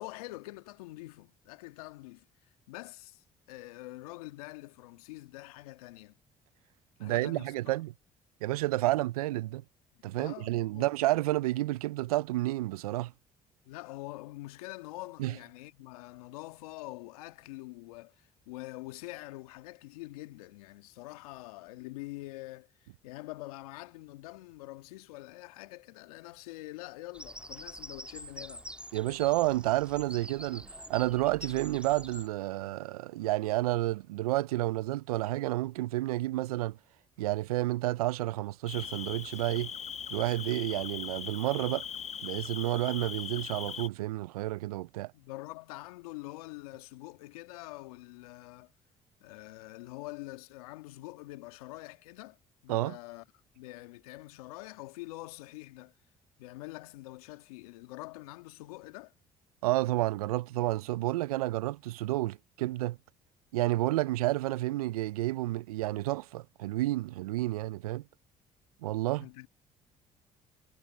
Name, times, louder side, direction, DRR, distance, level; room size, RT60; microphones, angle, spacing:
voice 1, 0.0-2.2 2.7-6.2 7.0-7.8 9.9-10.9 13.6-28.7 45.1-48.7 49.2-52.4 52.6-53.2 53.5-55.9 56.4-59.1 69.2-69.5, left 20 dB, 85° left, 1.5 m, -45 dB
voice 2, 7.0-7.9 8.4-9.6 10.0-13.1 15.2-15.3 28.9-36.8 37.2-39.7 40.1-41.8 42.2-45.1 52.7-53.0 59.6-63.0 63.5-68.0 68.8-69.2, right 17 dB, 90° right, 0.4 m, -30 dB
Bird vocalization bird call bird song, 27.1-32.3, right 1 dB, 5° right, 2.3 m, -46 dB
Cricket, 38.7-43.9, left 8 dB, 35° left, 1.0 m, -40 dB
hypercardioid pair, 55°, 18 cm